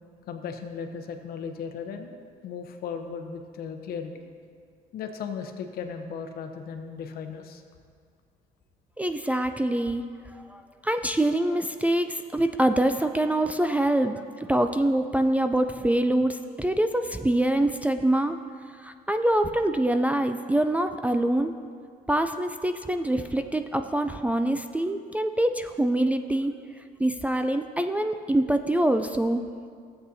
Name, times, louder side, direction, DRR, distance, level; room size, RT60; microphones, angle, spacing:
voice 1, 0.3-2.2 2.4-4.1 4.9-7.6, left 6 dB, 65° left, 6 dB, 0.8 m, -36 dB
voice 2, 9.0-10.0 10.3-18.4 18.8-21.5 22.1-26.5 27.0-29.4, right 1 dB, 10° right, 8 dB, 0.3 m, -25 dB
13.5 x 7.9 x 2.7 m, 2.1 s
cardioid pair, 110°, 17 cm